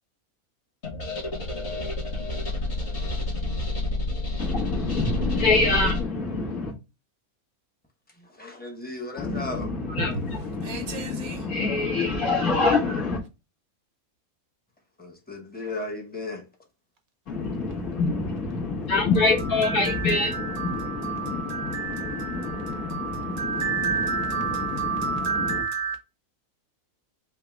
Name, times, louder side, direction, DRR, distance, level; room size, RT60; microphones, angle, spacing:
sound 1, 0.8-6.0, left 2 dB, 50° left, 1.7 m, -29 dB
voice 1, 4.4-6.7 9.2-13.2 17.3-25.6, left 3 dB, 75° left, 1.7 m, -26 dB
voice 2, 8.2-9.7 15.0-16.4, left 2 dB, 10° left, 0.7 m, -35 dB
voice 3, 10.6-11.4 20.6-20.8 21.0-26.0, right 5 dB, 75° right, 1.3 m, -30 dB
5.1 x 2.0 x 3.3 m
omnidirectional pair, 1.5 m